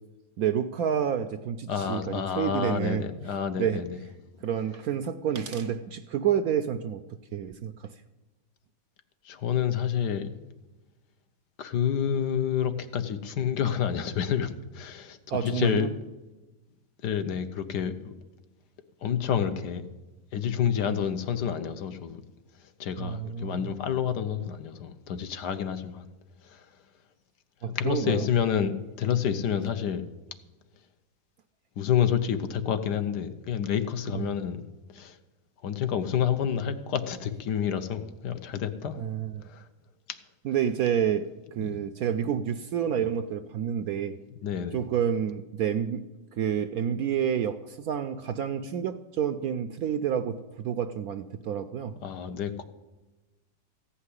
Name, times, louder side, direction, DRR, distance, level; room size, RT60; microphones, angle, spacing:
voice 1, 0.4-3.1 3.6-3.8 4.4-7.0 7.3-7.9 15.3-15.9 23.0-23.7 27.6-28.3 34.1-34.2 39.0-39.4 40.4-41.3 41.5-44.2 44.7-46.1 46.4-51.9, right 8 dB, 70° right, 9 dB, 0.9 m, -29 dB
voice 2, 1.7-4.0 9.2-10.5 11.6-15.9 17.0-18.1 19.0-19.8 20.3-22.2 22.8-26.1 26.4-26.7 27.6-30.1 31.8-34.6 34.9-35.2 35.6-39.0 39.4-39.7 41.6-41.8 44.4-44.8 52.0-52.6, left 8 dB, 70° left, 9 dB, 1.3 m, -29 dB
14.5 x 5.7 x 9.7 m, 1.1 s
omnidirectional pair, 1.9 m